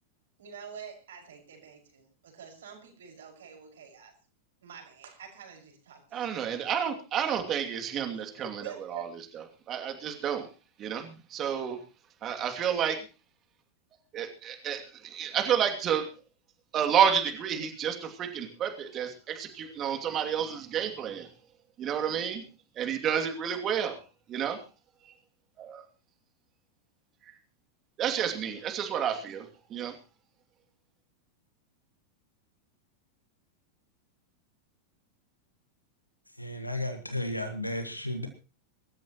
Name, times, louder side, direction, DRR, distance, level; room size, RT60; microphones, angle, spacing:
voice 1, 0.4-4.1 4.6-6.7 7.3-7.4 8.4-9.1, right 7 dB, 60° right, 5.8 m, -47 dB
voice 2, 6.1-9.1 9.3-10.5 10.8-11.8 12.2-13.0 14.1-16.1 16.7-21.3 21.8-22.4 22.8-24.0 24.3-24.6 25.6-25.8 28.0-29.9, right 8 dB, 30° right, 2.7 m, -30 dB
voice 3, 36.4-38.3, left 1 dB, 85° left, 1.8 m, -33 dB
25.0 x 13.5 x 3.1 m
figure-of-eight pair, 90°, 0 cm